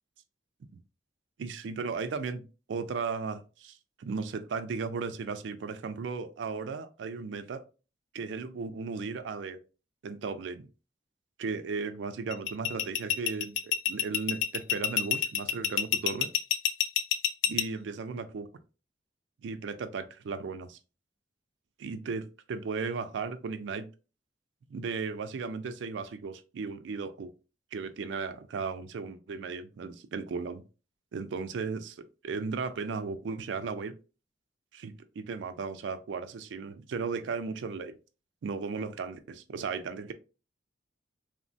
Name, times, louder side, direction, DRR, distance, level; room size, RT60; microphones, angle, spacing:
voice 1, 1.4-2.4 2.7-7.6 8.1-9.6 10.0-10.7 11.4-16.3 17.5-18.5 19.4-20.8 21.8-23.9 24.7-27.3 27.7-30.6 31.1-33.9 34.7-37.9 38.4-40.1, right 4 dB, 85° right, 0.4 m, -36 dB
sound 1, 12.3-17.6, left 10 dB, 85° left, 0.3 m, -27 dB
3.0 x 2.1 x 2.5 m
head